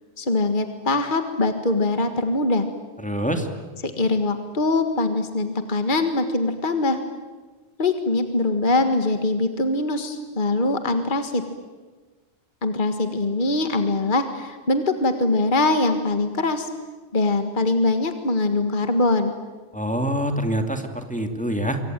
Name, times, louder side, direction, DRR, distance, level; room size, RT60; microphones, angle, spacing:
voice 1, 0.2-2.7 4.0-7.0 7.8-11.4 12.6-16.7 17.1-19.3, left 2 dB, 45° left, 7 dB, 1.9 m, -22 dB
voice 2, 3.0-3.5 19.7-21.8, equal, 5° left, 5 dB, 2.4 m, -25 dB
27.0 x 24.0 x 9.1 m, 1.3 s
omnidirectional pair, 1.2 m